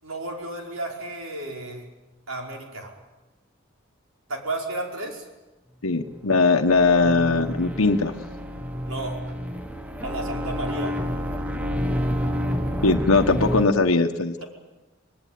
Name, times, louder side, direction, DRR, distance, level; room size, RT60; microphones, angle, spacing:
voice 1, 0.0-1.9 2.3-2.9 4.3-5.3 8.8-9.2 10.0-11.0 14.4-14.5, right 2 dB, 80° right, 1 dB, 5.2 m, -33 dB
voice 2, 5.8-8.1 12.8-14.4, left 3 dB, 85° left, 5 dB, 1.3 m, -20 dB
sound 1, 6.2-13.7, equal, 5° right, 1.3 m, -29 dB
26.0 x 20.0 x 9.4 m, 1.1 s
head